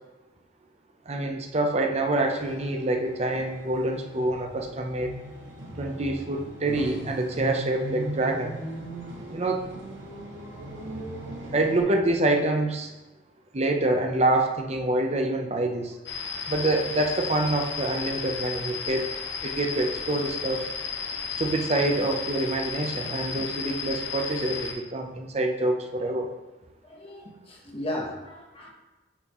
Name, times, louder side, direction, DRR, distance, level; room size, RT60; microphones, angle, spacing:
voice 1, 1.1-5.1 5.8-8.6 9.3-9.7 11.5-12.9 13.5-16.0 16.5-19.1 19.4-20.7 21.3-26.3, right 2 dB, 35° right, 4 dB, 0.7 m, -26 dB
sound 1, 2.3-11.8, right 1 dB, 85° right, 1.4 m, -38 dB
sound 2, 16.1-24.7, left 6 dB, 65° left, 1.0 m, -33 dB
voice 2, 26.8-28.7, left 1 dB, 30° left, -1 dB, 1.1 m, -36 dB
11.0 x 4.1 x 3.1 m, 1.1 s
head